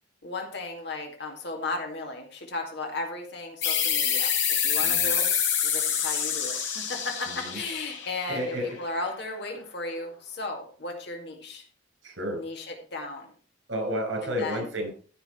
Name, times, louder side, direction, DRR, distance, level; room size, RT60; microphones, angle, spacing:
voice 1, 0.2-5.3 5.6-11.6 12.3-13.3 14.2-14.7, left 2 dB, 60° left, 2 dB, 2.3 m, -35 dB
sound 1, 3.6-8.9, left 8 dB, 80° left, 3.4 m, -27 dB
voice 2, 4.8-5.2 7.3-7.6 8.3-8.8 12.0-12.4 13.7-14.9, equal, 80° right, 3 dB, 5.5 m, -31 dB
14.5 x 5.9 x 4.5 m, 0.42 s
head